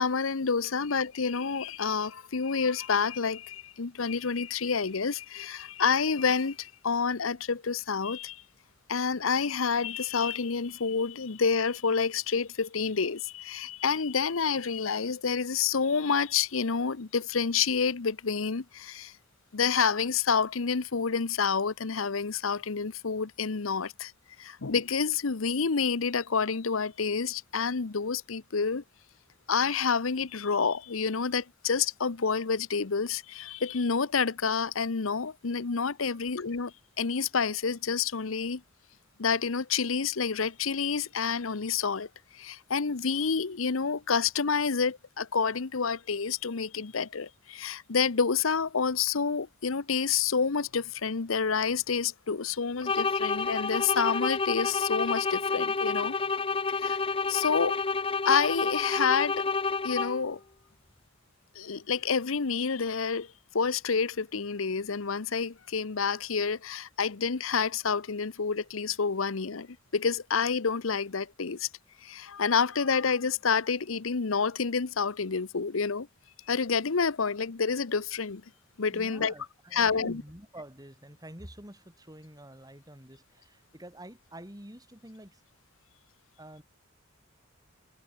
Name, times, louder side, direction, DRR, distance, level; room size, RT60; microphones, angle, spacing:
voice 1, 0.0-8.4 8.9-19.1 19.5-24.1 24.4-28.8 29.5-38.6 39.2-42.1 42.3-56.1 56.7-57.0 57.3-57.8 58.2-59.5 59.8-60.4 61.5-69.7 69.9-71.7 72.0-76.1 76.5-78.4 78.8-79.3 79.7-80.2, left 5 dB, 80° left, 0.9 m, -28 dB
sound 1, 52.8-60.3, left 4 dB, 25° left, 0.8 m, -29 dB
voice 2, 78.9-85.4 86.4-86.6, right 1 dB, 20° right, 7.0 m, -48 dB
head